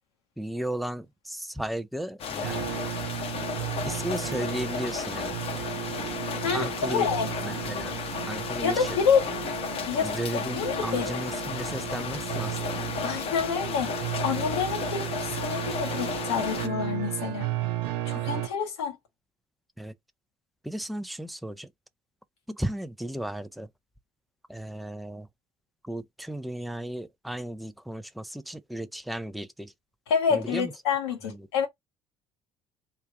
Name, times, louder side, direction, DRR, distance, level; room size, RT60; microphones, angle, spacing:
voice 1, 0.4-2.7 3.8-5.3 6.5-7.1 7.4-7.9 8.3-8.7 10.0-12.8 19.8-19.9 20.6-21.7 22.5-23.7 24.5-25.3 25.9-29.7 30.3-30.7, right 1 dB, ahead, 0.4 m, -35 dB
sound 1, 2.2-16.7, left 7 dB, 45° left, 0.7 m, -34 dB
sound 2, 2.4-18.5, right 13 dB, 65° right, 0.5 m, -34 dB
voice 2, 6.4-7.3 8.6-9.3 9.9-11.1 13.0-13.9 14.2-17.5 18.1-19.0 30.1-31.7, left 6 dB, 75° left, 0.8 m, -28 dB
3.3 x 2.4 x 3.4 m
figure-of-eight pair, 55°, 14 cm